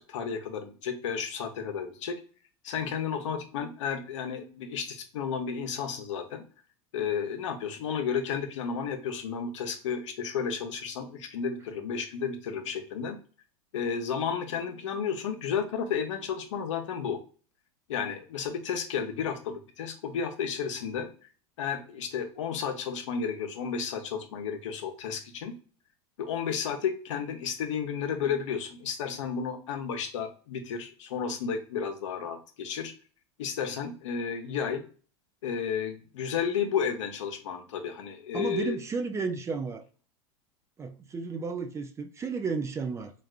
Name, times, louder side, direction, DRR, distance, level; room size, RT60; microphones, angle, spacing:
voice 1, 0.0-2.1 2.6-6.4 6.9-13.2 13.7-17.2 17.9-21.1 21.6-25.5 26.2-32.9 33.4-34.8 35.4-38.8, left 7 dB, 80° left, 0.7 m, -32 dB
voice 2, 38.3-39.8 40.8-43.1, right 4 dB, 20° right, 0.3 m, -33 dB
3.4 x 2.3 x 2.3 m
hypercardioid pair, 115°, 15 cm